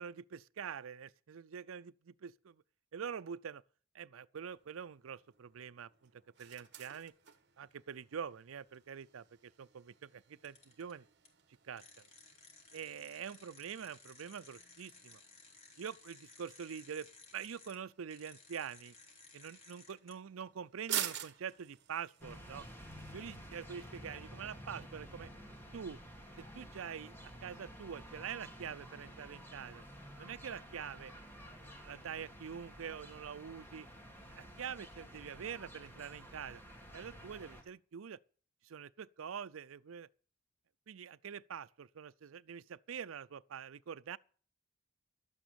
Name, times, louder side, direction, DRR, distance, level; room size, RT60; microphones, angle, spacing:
voice 1, 0.0-2.6 2.9-3.6 3.9-7.1 7.6-11.0 11.6-12.1 12.7-15.2 15.8-17.1 17.3-18.9 19.3-22.6 23.1-25.3 25.7-26.0 26.4-29.8 30.2-31.1 31.8-33.9 34.3-36.6 36.9-38.2 38.6-40.1 40.9-44.2, right 7 dB, 85° right, 0.5 m, -45 dB
sound 1, 4.4-24.0, right 11 dB, 60° right, 1.4 m, -49 dB
sound 2, 10.4-10.9 11.2-11.3 11.8-17.8 18.1-20.1, left 4 dB, 35° left, 3.4 m, -58 dB
sound 3, 22.2-37.6, equal, 10° left, 2.8 m, -52 dB
12.5 x 9.0 x 6.9 m
head